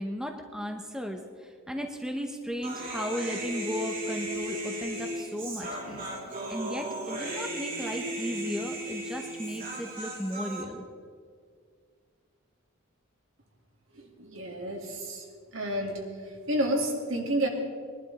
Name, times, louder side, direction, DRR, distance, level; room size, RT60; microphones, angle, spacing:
voice 1, 0.0-6.1 6.5-10.8, equal, 5° right, 3 dB, 0.8 m, -35 dB
Human voice, 2.6-10.6, right 1 dB, 40° right, 2.7 m, -36 dB
voice 2, 13.9-15.2 15.5-17.5, right 1 dB, 65° right, 1 dB, 2.4 m, -30 dB
21.0 x 11.5 x 4.1 m, 2.1 s
head